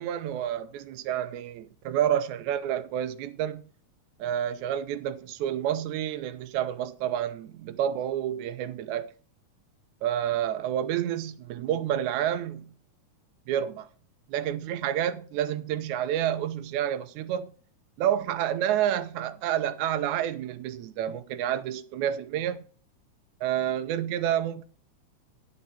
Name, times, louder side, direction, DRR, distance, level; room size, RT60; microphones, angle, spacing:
voice 1, 0.0-3.6 4.2-9.1 10.0-12.7 13.5-13.9 14.3-17.5 18.0-22.7 23.4-24.6, right 10 dB, 80° right, 2.1 m, -29 dB
10.5 x 7.0 x 4.3 m
omnidirectional pair, 3.5 m